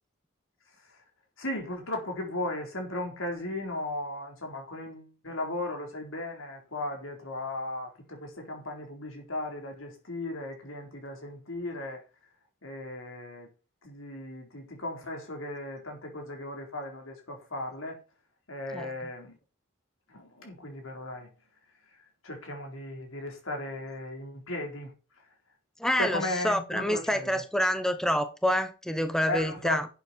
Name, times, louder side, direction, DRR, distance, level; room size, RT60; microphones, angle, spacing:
voice 1, 1.4-12.0 12.6-13.5 13.8-18.0 18.5-19.4 20.1-21.3 22.2-24.9 26.0-27.4 29.3-29.8, left 1 dB, 85° left, 4.4 m, -36 dB
voice 2, 18.7-19.1 25.8-29.9, equal, 5° left, 1.0 m, -27 dB
11.5 x 8.1 x 4.6 m
head